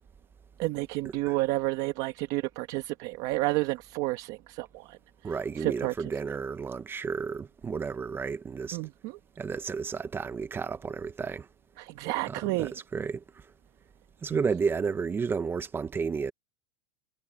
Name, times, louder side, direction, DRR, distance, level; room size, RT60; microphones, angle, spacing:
voice 1, 0.6-6.1 8.7-9.2 11.8-12.8 14.3-14.4, right 20 dB, 40° right, 1.4 m, -31 dB
voice 2, 5.2-8.8 9.4-11.5 12.6-13.4 14.2-16.3, right 5 dB, 10° right, 0.7 m, -32 dB
supercardioid pair, 165°, 18 cm